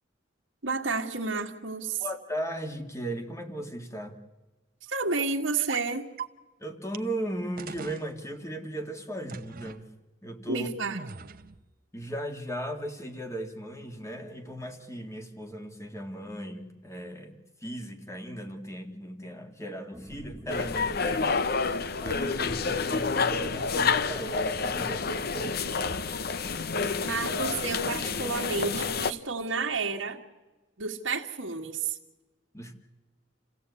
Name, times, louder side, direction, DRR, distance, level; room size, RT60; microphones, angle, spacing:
voice 1, 0.6-2.0 4.8-6.1 10.5-11.0 27.0-30.2 30.8-32.0, right 4 dB, 80° right, 1 dB, 1.7 m, -31 dB
voice 2, 2.0-4.2 6.6-9.9 10.2-10.7 11.9-21.7 22.0-25.6 32.5-32.7, right 1 dB, 15° left, 5 dB, 2.0 m, -37 dB
sound 1, 5.7-5.9 6.2-6.3 6.9-7.0 7.6-8.1 9.3-9.8 10.9-11.6, right 5 dB, 45° right, 0.8 m, -39 dB
sound 2, 19.9-24.4 24.9-25.0, equal, 5° right, 0.9 m, -49 dB
sound 3, 20.5-29.1, left 4 dB, 55° left, 0.8 m, -29 dB
28.5 x 16.0 x 8.4 m, 1.2 s
head